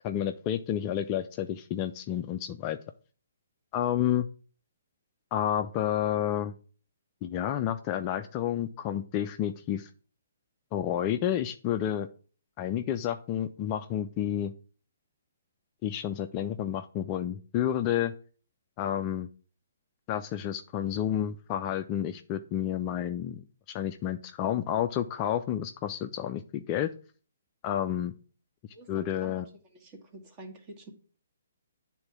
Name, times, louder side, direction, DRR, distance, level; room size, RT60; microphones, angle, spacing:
voice 1, 0.0-2.8 3.7-4.3 5.3-6.5 7.2-9.9 10.7-12.1 12.6-14.5 15.8-18.1 18.8-19.3 20.1-23.4 23.7-26.9 27.6-28.1 28.9-29.4, left 10 dB, 25° left, 0.4 m, -30 dB
voice 2, 28.7-29.5 29.8-30.9, right 2 dB, 25° right, 1.6 m, -47 dB
9.6 x 3.8 x 5.9 m
figure-of-eight pair, 130°, 0 cm